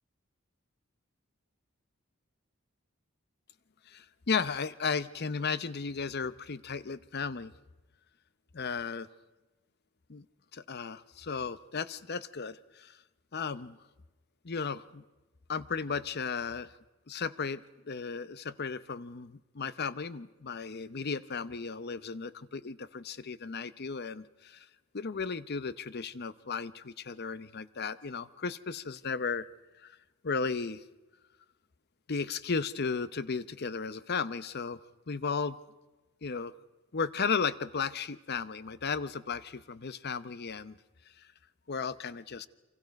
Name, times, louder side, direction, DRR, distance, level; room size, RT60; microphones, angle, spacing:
voice 1, 3.9-7.5 8.5-9.1 10.1-10.2 10.5-13.0 13.3-13.8 14.4-15.0 15.5-16.7 17.1-24.7 24.9-29.5 29.8-30.0 30.2-30.8 32.1-34.8 35.1-35.6 36.2-36.5 36.9-40.8 41.7-42.5, left 5 dB, 50° left, 15 dB, 0.7 m, -35 dB
29.5 x 25.0 x 5.3 m, 1.1 s
head